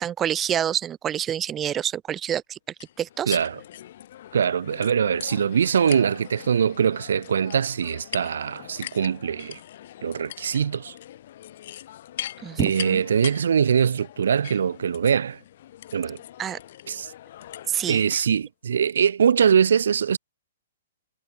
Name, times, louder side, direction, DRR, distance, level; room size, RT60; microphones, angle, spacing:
voice 1, 0.0-2.6 3.0-3.4 12.4-13.0 16.4-16.6 17.7-18.2, right 10 dB, 15° right, 0.3 m, -27 dB
sound 1, 2.8-18.2, left 12 dB, 45° left, 2.5 m, -41 dB
voice 2, 3.3-3.6 4.3-9.6 10.0-10.9 12.6-15.4 15.9-16.2 16.9-17.1 17.9-20.2, right 7 dB, 80° right, 0.5 m, -22 dB
hypercardioid pair, 170°, 0 cm